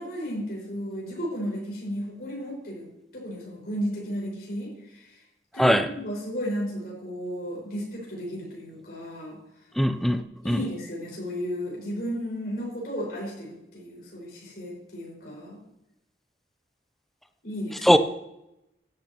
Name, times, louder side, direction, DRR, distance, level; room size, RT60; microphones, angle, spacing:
voice 1, 0.0-2.9 3.1-5.1 5.5-9.4 10.4-15.6 17.4-17.9, equal, 55° left, -4 dB, 5.2 m, -34 dB
voice 2, 9.8-10.6 17.8-18.0, equal, ahead, 10 dB, 0.5 m, -20 dB
16.0 x 11.5 x 3.0 m, 0.86 s
head